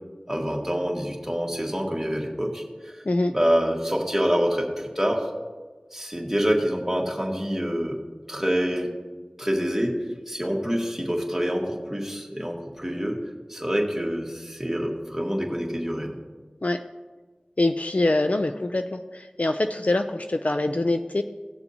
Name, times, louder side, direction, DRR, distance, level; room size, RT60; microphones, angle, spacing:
voice 1, 0.3-3.0 3.3-5.3 5.9-8.0 8.3-8.9 9.4-9.9 10.3-13.2 13.5-16.2, equal, 10° right, -1 dB, 1.9 m, -26 dB
voice 2, 17.6-21.2, left 2 dB, 55° left, 7 dB, 0.4 m, -24 dB
18.0 x 6.9 x 2.8 m, 1.3 s
wide cardioid pair, 45°, 3 cm